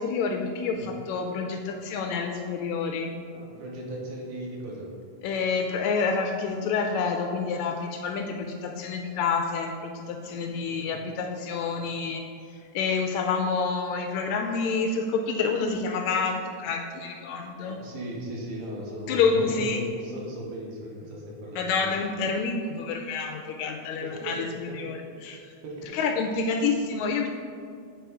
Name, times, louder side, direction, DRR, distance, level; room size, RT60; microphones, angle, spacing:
voice 1, 0.0-3.1 5.2-12.2 12.7-17.8 19.1-19.9 21.5-25.4 25.9-27.3, left 5 dB, 80° left, 3 dB, 1.7 m, -28 dB
voice 2, 3.3-4.9 10.3-11.1 17.6-21.7 24.0-24.8 25.6-26.0, right 1 dB, 85° right, -3 dB, 2.7 m, -37 dB
8.3 x 3.5 x 4.7 m, 2.2 s
omnidirectional pair, 3.5 m